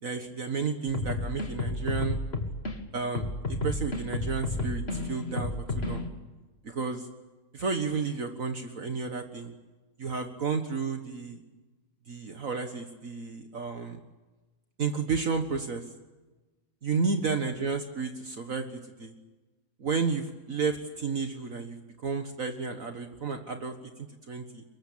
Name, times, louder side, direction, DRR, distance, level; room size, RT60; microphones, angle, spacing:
voice 1, 0.0-2.2 2.9-6.1 6.6-7.1 7.5-9.5 10.0-11.4 12.1-14.0 14.8-15.8 16.8-19.1 19.8-24.6, right 5 dB, 60° right, 6 dB, 1.9 m, -32 dB
sound 1, 0.9-2.7 3.1-6.1, left 2 dB, 40° left, 2.5 m, -31 dB
24.5 x 22.0 x 8.7 m, 1.2 s
omnidirectional pair, 1.7 m